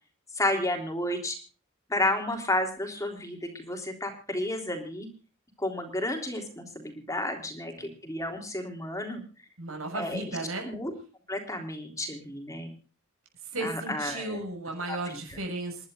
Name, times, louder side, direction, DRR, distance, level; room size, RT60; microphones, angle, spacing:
voice 1, 0.4-1.4 1.9-5.1 5.6-9.2 9.9-10.4 10.7-10.9 11.3-12.7 13.6-14.4 14.9-15.2, left 1 dB, 15° left, 4 dB, 3.4 m, -31 dB
voice 2, 9.6-10.7 13.5-15.9, right 2 dB, 80° right, 3 dB, 6.9 m, -35 dB
28.5 x 12.0 x 2.6 m, 0.35 s
head